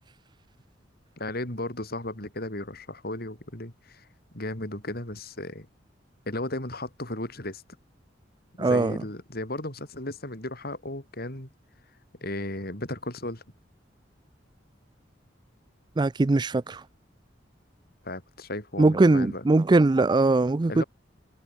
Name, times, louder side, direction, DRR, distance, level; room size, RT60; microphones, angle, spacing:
voice 1, 1.2-4.1 4.3-5.7 6.3-7.6 8.6-11.5 12.2-13.4 18.0-19.4 20.7-20.8, left 1 dB, 55° left, 5.1 m, -35 dB
voice 2, 8.6-9.0 16.0-16.8 18.8-20.8, right 2 dB, 25° right, 0.4 m, -21 dB
head